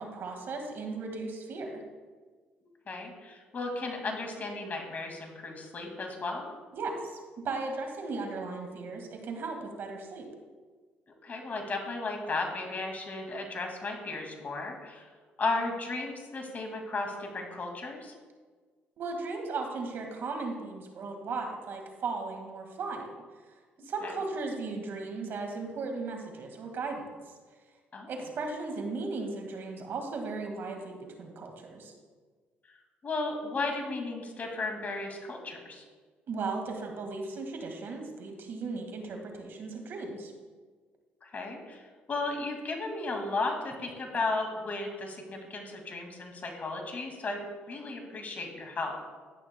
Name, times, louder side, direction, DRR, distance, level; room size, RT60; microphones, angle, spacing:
voice 1, 0.0-1.8 6.7-7.2 7.4-10.3 19.0-23.1 23.8-27.1 28.1-31.9 36.3-40.3, right 3 dB, 60° right, 3 dB, 1.9 m, -36 dB
voice 2, 2.9-6.5 11.1-15.0 15.4-18.1 24.0-24.1 27.9-28.1 33.0-35.8 41.2-41.8 42.1-47.4 47.7-49.0, left 3 dB, 45° left, 3 dB, 2.2 m, -35 dB
12.5 x 10.5 x 2.2 m, 1.5 s
supercardioid pair, 75°, 4 cm